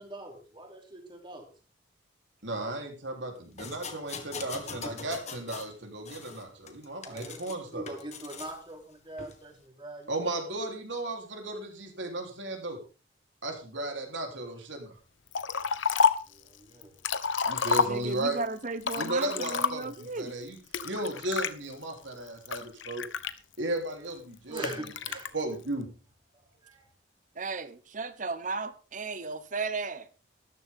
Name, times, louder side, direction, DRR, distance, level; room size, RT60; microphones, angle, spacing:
voice 1, 0.0-1.5 7.0-10.5 16.3-16.9 24.5-25.3 26.6-26.9, right 1 dB, 25° right, 3.1 m, -43 dB
voice 2, 2.4-7.9 10.1-12.8 13.4-14.9 17.5-18.4 19.0-20.6 20.8-23.0 23.6-24.9 25.3-25.9, right 2 dB, 75° right, 3.5 m, -35 dB
sound 1, 3.6-5.7 6.0-7.6 7.9-8.6 9.2-9.3, left 5 dB, 35° left, 1.6 m, -42 dB
Liquid, 15.3-16.3 16.8-18.3 18.8-20.0 20.7-21.5 22.1-23.8 24.6-25.3, left 6 dB, 80° left, 1.0 m, -28 dB
voice 3, 17.8-20.3 27.4-30.1, right 3 dB, 40° right, 1.0 m, -35 dB
13.5 x 13.5 x 3.7 m
head